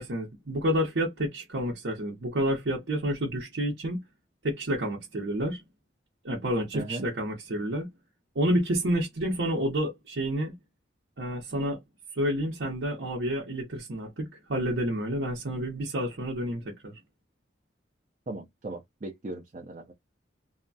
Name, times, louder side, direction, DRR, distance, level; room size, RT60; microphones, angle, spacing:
voice 1, 0.0-4.0 4.4-5.6 6.2-7.9 8.3-10.5 11.2-11.8 12.1-17.0, equal, 90° right, 0.9 m, -29 dB
voice 2, 6.7-7.1 18.3-19.9, right 2 dB, 40° right, 0.5 m, -38 dB
2.8 x 2.2 x 2.6 m
head